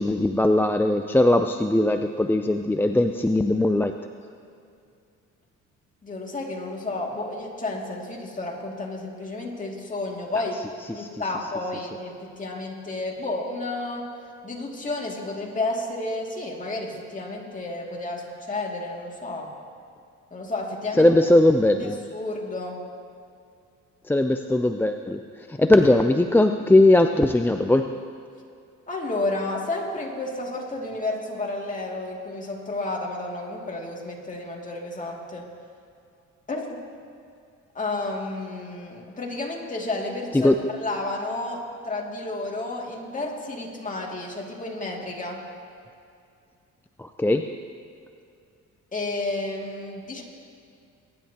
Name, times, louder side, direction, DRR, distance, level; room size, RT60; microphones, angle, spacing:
voice 1, 0.0-3.9 10.9-11.2 21.0-22.0 24.1-27.9 40.3-40.5 47.0-47.5, left 1 dB, 5° left, 6 dB, 0.4 m, -20 dB
voice 2, 6.0-10.6 10.9-14.1 14.4-19.5 20.3-21.1 21.8-22.9 28.9-35.5 36.5-36.8 37.7-45.4 48.9-50.2, left 2 dB, 25° left, -1 dB, 2.3 m, -31 dB
22.5 x 10.5 x 2.9 m, 2.4 s
cardioid pair, 90°, 30 cm